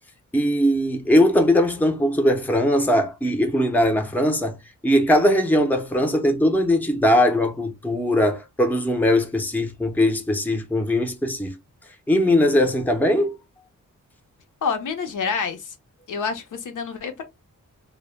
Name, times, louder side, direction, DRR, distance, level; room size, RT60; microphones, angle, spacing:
voice 1, 0.3-4.6 4.8-11.5 12.1-13.3, left 1 dB, 5° left, 0.5 m, -20 dB
voice 2, 14.6-15.7 16.1-17.2, left 5 dB, 75° left, 0.6 m, -27 dB
2.1 x 2.0 x 3.2 m
wide cardioid pair, 100°, 31 cm